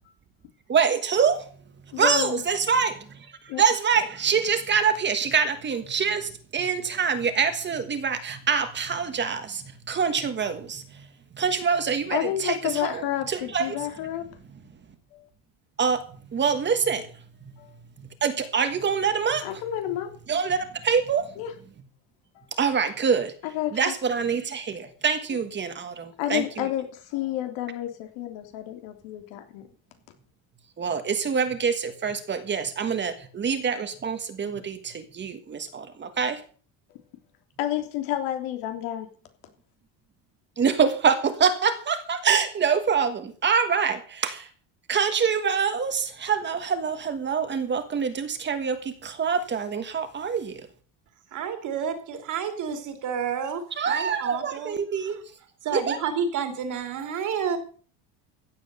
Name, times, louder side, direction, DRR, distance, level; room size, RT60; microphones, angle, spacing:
voice 1, 0.7-1.5 2.0-2.9 3.6-11.1 11.3-13.8 14.5-14.6 15.8-17.2 18.2-19.6 20.3-21.3 22.6-23.3 23.7-26.7 30.8-36.4 40.6-44.5 44.9-50.7 53.8-55.2 55.7-56.0, right 6 dB, 25° right, 1.5 m, -25 dB
voice 2, 1.9-2.4 3.5-3.6 12.1-14.3 15.1-15.3 17.6-17.7 19.4-20.1 21.4-21.5 22.3-22.5 23.4-23.9 26.2-29.7 37.6-39.1, left 12 dB, 90° left, 3.3 m, -30 dB
voice 3, 51.3-55.1 55.6-57.6, right 7 dB, 40° right, 2.8 m, -30 dB
15.5 x 8.0 x 6.7 m
cardioid pair, 175°, 44 cm